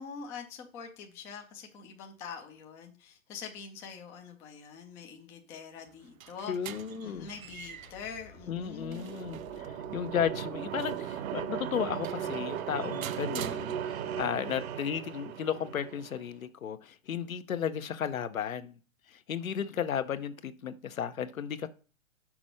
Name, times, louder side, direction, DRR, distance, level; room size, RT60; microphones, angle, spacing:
voice 1, 0.0-6.5 7.0-9.1, left 6 dB, 10° left, 0.3 m, -44 dB
sound 1, 5.9-14.3, right 10 dB, 90° right, 0.5 m, -47 dB
voice 2, 6.5-7.3 8.5-18.8 19.1-21.7, left 8 dB, 85° left, 0.9 m, -34 dB
sound 2, 7.1-12.2, left 7 dB, 60° left, 1.7 m, -57 dB
sound 3, 8.4-16.3, right 9 dB, 50° right, 0.9 m, -37 dB
6.1 x 4.3 x 6.3 m
hypercardioid pair, 120°, 40 cm